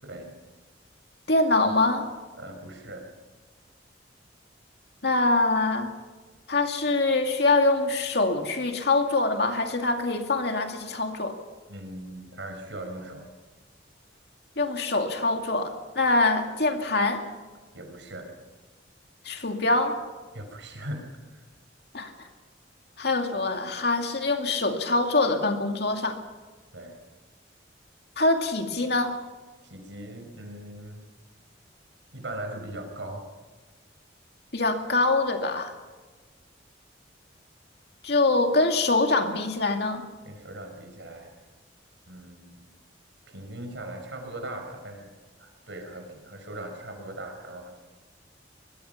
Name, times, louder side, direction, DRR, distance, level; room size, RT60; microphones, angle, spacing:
voice 1, 0.0-0.3 2.4-3.1 11.7-13.3 17.7-18.3 20.3-21.5 26.7-27.0 29.6-31.0 32.1-33.3 40.2-41.3 42.1-42.7 43.3-45.1 45.4-47.7, right 1 dB, 75° right, 4 dB, 5.1 m, -39 dB
voice 2, 1.3-2.1 5.0-5.9 6.5-11.4 14.6-17.2 19.2-20.0 21.9-22.3 23.0-26.2 28.2-29.2 34.5-35.7 38.0-40.1, left 2 dB, 60° left, 4 dB, 2.4 m, -24 dB
23.5 x 20.5 x 5.8 m, 1.3 s
head